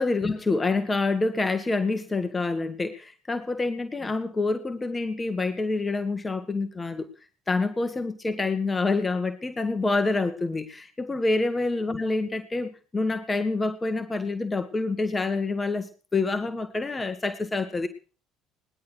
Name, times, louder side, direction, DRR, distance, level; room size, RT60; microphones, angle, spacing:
voice 1, 0.0-7.1 7.5-17.9, left 3 dB, 20° left, 8 dB, 1.5 m, -27 dB
19.0 x 11.0 x 6.2 m, 0.39 s
figure-of-eight pair, 60°, 0 cm